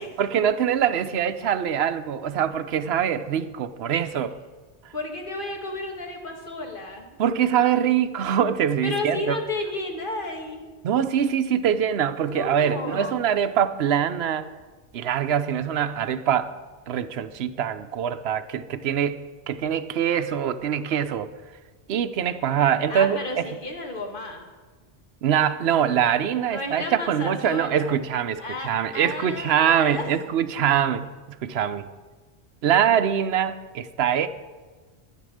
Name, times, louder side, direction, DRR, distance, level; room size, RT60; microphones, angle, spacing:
voice 1, 0.2-4.3 7.2-9.4 10.8-14.5 14.9-16.5 16.9-21.3 21.9-23.4 25.2-31.1 31.4-31.9 32.6-34.3, right 9 dB, 70° right, 12 dB, 0.9 m, -23 dB
voice 2, 4.9-7.2 8.8-10.6 12.2-13.3 22.9-24.5 26.5-28.0 28.4-30.1, left 2 dB, 50° left, 2 dB, 1.9 m, -32 dB
12.5 x 8.4 x 6.5 m, 1.3 s
omnidirectional pair, 1.1 m